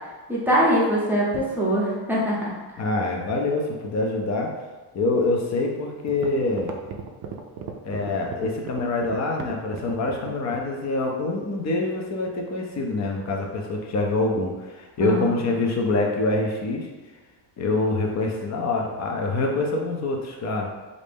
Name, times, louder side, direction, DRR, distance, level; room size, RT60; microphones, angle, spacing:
voice 1, 0.3-2.5 15.0-15.2, equal, 5° right, -7 dB, 0.7 m, -22 dB
voice 2, 2.8-4.5 4.9-6.7 7.8-16.9 17.6-20.7, left 2 dB, 35° left, 1 dB, 0.6 m, -25 dB
sound 1, 5.6-5.7 6.1-10.7, right 7 dB, 45° right, 0.4 m, -35 dB
3.2 x 2.6 x 3.4 m, 1.2 s
cardioid pair, 125°, 50 cm